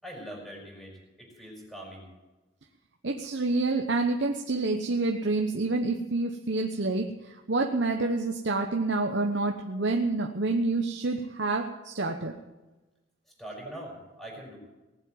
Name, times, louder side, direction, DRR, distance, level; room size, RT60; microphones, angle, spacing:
voice 1, 0.0-2.1 13.4-14.6, equal, ahead, -2 dB, 5.1 m, -43 dB
voice 2, 3.0-12.3, right 3 dB, 65° right, 3 dB, 1.0 m, -28 dB
19.5 x 7.7 x 9.1 m, 1.1 s
head